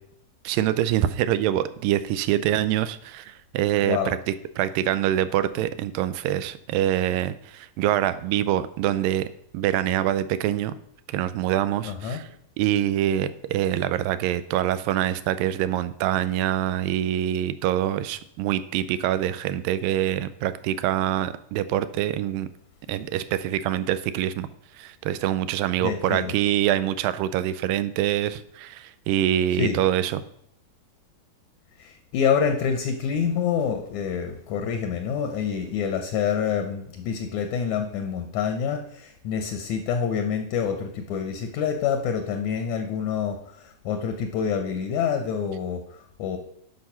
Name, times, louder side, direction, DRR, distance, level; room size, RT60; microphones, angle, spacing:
voice 1, 0.4-9.3 9.5-10.7 11.1-12.3 12.6-22.5 22.9-24.5 24.8-30.2, right 12 dB, 85° right, 14 dB, 2.3 m, -25 dB
voice 2, 3.8-4.2 11.8-12.2 25.8-26.3 29.6-29.8 31.8-46.4, left 7 dB, 75° left, 6 dB, 1.9 m, -27 dB
10.5 x 5.6 x 5.6 m, 0.72 s
omnidirectional pair, 4.0 m